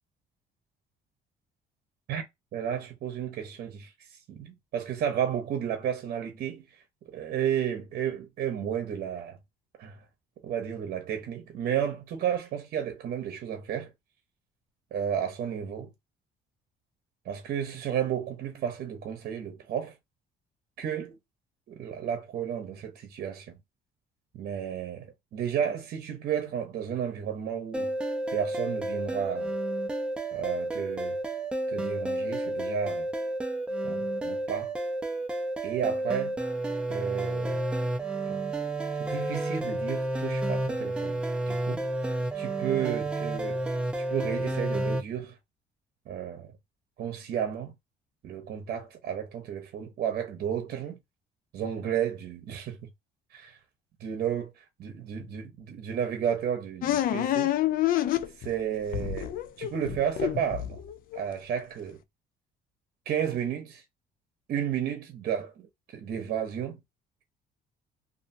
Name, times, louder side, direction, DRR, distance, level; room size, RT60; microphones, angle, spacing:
voice 1, 2.5-3.9 4.3-6.6 7.0-9.4 9.8-10.0 10.4-13.9 14.9-15.9 17.2-19.9 20.8-21.2 21.7-23.6 24.3-27.9 28.3-29.5 30.3-31.2 31.7-33.1 33.8-34.7 35.6-36.3 36.9-37.6 38.3-38.4 39.0-41.1 41.5-41.9 42.3-43.6 44.1-45.4 46.1-46.5 47.0-47.7 48.2-51.0 51.5-52.9 54.0-54.4 54.8-57.5 58.4-60.8 61.1-62.0 63.1-63.8 64.5-66.8, right 9 dB, 60° right, 0.8 m, -32 dB
sound 1, 27.7-45.0, right 1 dB, 5° right, 0.5 m, -31 dB
sound 2, 56.8-58.6 58.9-61.2, left 12 dB, 55° left, 0.4 m, -28 dB
2.6 x 2.6 x 2.5 m
cardioid pair, 110°, 17 cm